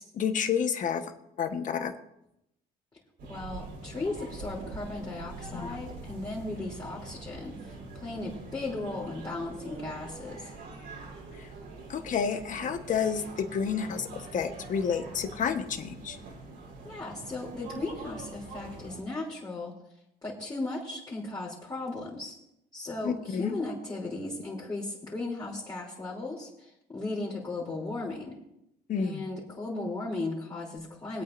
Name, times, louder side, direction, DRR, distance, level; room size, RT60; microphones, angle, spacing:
voice 1, 0.1-1.0 1.4-1.9 5.5-5.8 11.4-11.5 11.9-16.2 23.0-23.6 28.9-29.3, left 7 dB, 50° left, 6 dB, 1.3 m, -30 dB
sound 1, 3.2-19.0, right 3 dB, 75° right, 3.8 m, -44 dB
voice 2, 3.3-10.5 16.8-19.7 20.2-22.3 22.7-28.4 29.0-31.2, left 2 dB, 20° left, -8 dB, 3.3 m, -36 dB
24.5 x 8.7 x 2.7 m, 0.82 s
cardioid pair, 110°, 17 cm